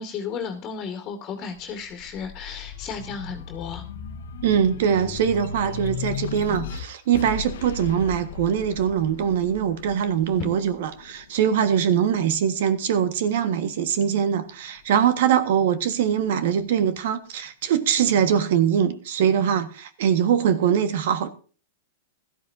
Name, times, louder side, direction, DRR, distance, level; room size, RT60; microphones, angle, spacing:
voice 1, 0.0-3.8 10.4-10.5, left 6 dB, 35° left, 2.1 m, -33 dB
sound 1, 1.5-12.3 12.9-14.0, left 7 dB, 75° left, 1.3 m, -37 dB
voice 2, 4.4-21.3, right 8 dB, 65° right, 1.6 m, -22 dB
16.5 x 13.0 x 2.7 m
hypercardioid pair, 120°, 0 cm